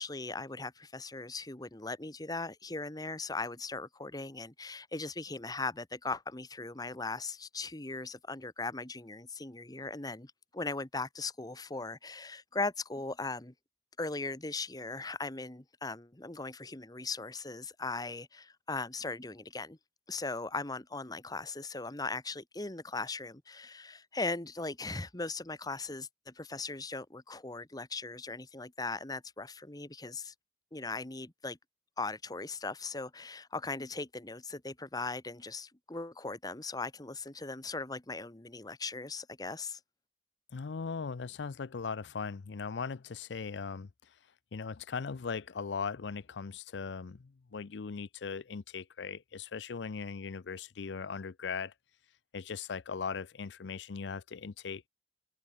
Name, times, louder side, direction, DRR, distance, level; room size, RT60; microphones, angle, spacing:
voice 1, 0.0-13.5 14.0-19.8 20.1-30.3 30.7-31.6 32.0-39.8, left 3 dB, 20° left, 1.4 m, -39 dB
voice 2, 40.5-43.9 44.5-51.7 52.3-54.8, left 5 dB, 85° left, 0.6 m, -39 dB
open air
head